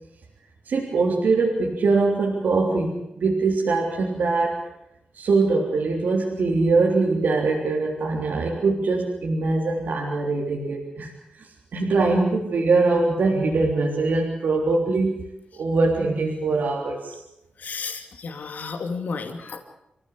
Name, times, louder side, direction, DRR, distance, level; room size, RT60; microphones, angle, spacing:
voice 1, 0.7-4.6 5.1-11.1 11.4-15.3 15.5-17.2, right 3 dB, 80° right, 0 dB, 3.5 m, -22 dB
voice 2, 17.6-19.6, left 4 dB, 70° left, 5 dB, 2.6 m, -32 dB
27.0 x 16.0 x 8.3 m, 0.83 s
wide cardioid pair, 140°, 3 cm